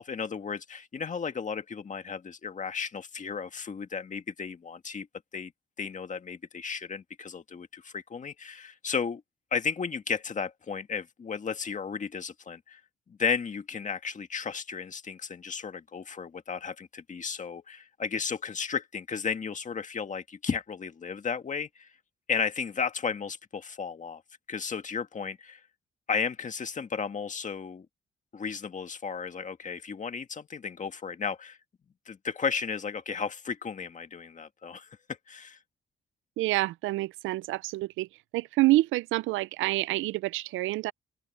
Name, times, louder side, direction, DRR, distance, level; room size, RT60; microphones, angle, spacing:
voice 1, 0.0-5.1 5.3-5.5 5.8-9.2 9.5-12.8 13.1-21.9 22.3-24.2 24.5-25.6 26.1-27.9 28.3-31.6 32.1-35.6, left 6 dB, 40° left, 1.9 m, -34 dB
voice 2, 36.4-38.1 38.3-40.9, right 19 dB, 85° right, 0.4 m, -27 dB
open air
cardioid pair, 90°, 20 cm